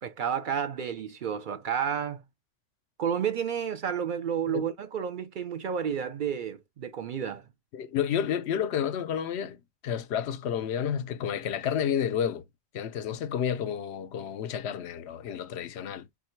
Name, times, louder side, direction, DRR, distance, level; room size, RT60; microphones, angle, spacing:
voice 1, 0.0-2.2 3.0-7.4, right 8 dB, 55° right, 0.6 m, -31 dB
voice 2, 7.7-9.6 9.8-12.4 12.7-16.1, left 8 dB, 85° left, 0.9 m, -30 dB
3.8 x 2.1 x 4.4 m
omnidirectional pair, 1.1 m